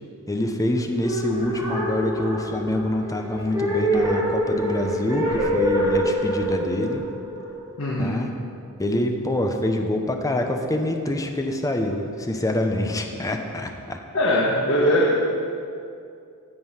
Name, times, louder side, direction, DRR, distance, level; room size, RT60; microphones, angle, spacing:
voice 1, 0.3-7.1 7.9-8.3 8.8-14.0, left 1 dB, 15° left, 4 dB, 0.8 m, -26 dB
sound 1, 0.9-8.1, equal, 15° right, 2.5 m, -25 dB
voice 2, 7.8-8.2 14.1-15.2, equal, 65° left, -4 dB, 1.4 m, -20 dB
16.0 x 5.5 x 5.7 m, 2.4 s
head